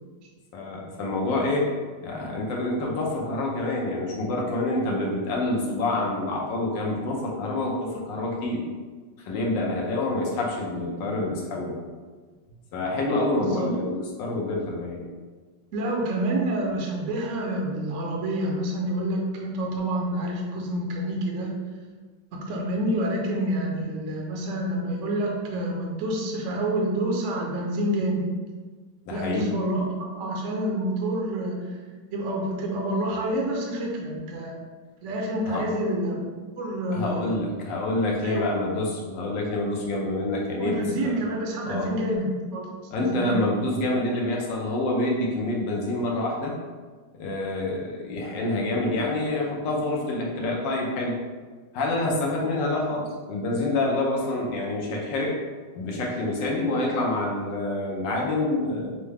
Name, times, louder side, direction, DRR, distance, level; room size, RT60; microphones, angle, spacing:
voice 1, 0.5-1.7 2.0-8.6 9.2-11.8 12.7-15.0 29.1-29.5 35.5-35.7 36.9-41.2 41.6-41.9 42.9-46.5 47.2-51.2 51.7-55.4 55.7-58.9, left 2 dB, 80° left, -1 dB, 1.5 m, -27 dB
voice 2, 13.4-13.7 15.7-21.5 22.3-28.3 29.1-31.5 32.1-34.5 35.0-36.2 36.6-37.3 38.2-38.4 40.6-42.7 43.1-43.3, right 1 dB, 60° right, -1 dB, 0.8 m, -28 dB
5.9 x 2.1 x 3.3 m, 1.4 s
omnidirectional pair, 2.0 m